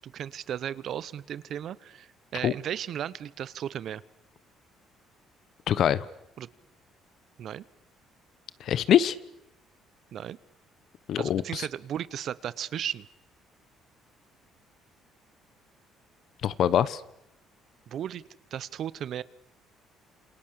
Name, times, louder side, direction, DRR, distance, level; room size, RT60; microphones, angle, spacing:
voice 1, 0.0-4.0 6.4-6.5 7.4-7.6 10.1-10.4 11.2-13.1 17.9-18.2 18.5-19.2, right 10 dB, 55° right, 19 dB, 0.9 m, -35 dB
voice 2, 5.7-6.0 8.6-9.1 11.1-11.7 16.4-17.0, left 10 dB, 55° left, 18 dB, 1.1 m, -24 dB
27.5 x 27.0 x 6.8 m, 0.83 s
cardioid pair, 135°, 0 cm